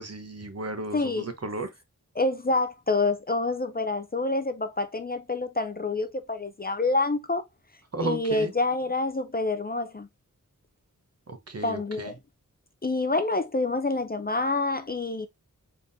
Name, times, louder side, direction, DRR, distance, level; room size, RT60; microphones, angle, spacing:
voice 1, 0.0-1.7 7.9-8.5 11.3-12.1, right 2 dB, 50° right, 0.9 m, -34 dB
voice 2, 0.9-1.3 2.2-7.4 8.0-10.1 11.6-12.2 12.8-15.3, left 3 dB, 30° left, 0.5 m, -27 dB
3.7 x 3.6 x 2.6 m
wide cardioid pair, 70°, 32 cm